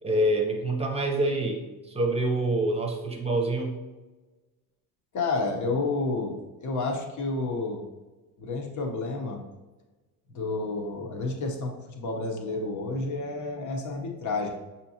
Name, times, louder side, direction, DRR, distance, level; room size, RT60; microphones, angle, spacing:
voice 1, 0.0-3.8, right 1 dB, 15° right, 2 dB, 0.9 m, -26 dB
voice 2, 5.1-7.8 8.4-9.4 10.3-14.5, left 3 dB, 40° left, 2 dB, 1.1 m, -30 dB
6.0 x 2.8 x 2.9 m, 1.2 s
supercardioid pair, 80°, 45 cm